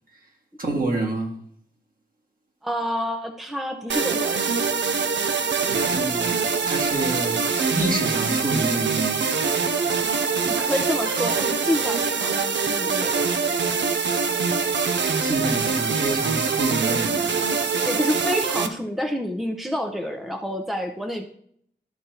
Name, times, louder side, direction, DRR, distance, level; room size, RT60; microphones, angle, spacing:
voice 1, 0.6-1.3 5.6-9.2 15.2-17.5, right 2 dB, 50° right, 1.8 m, -28 dB
voice 2, 2.6-4.5 10.4-13.3 17.8-21.3, equal, ahead, 0.7 m, -28 dB
sound 1, 3.9-18.7, right 5 dB, 90° right, 0.6 m, -24 dB
12.5 x 5.1 x 2.9 m
wide cardioid pair, 80°, 18 cm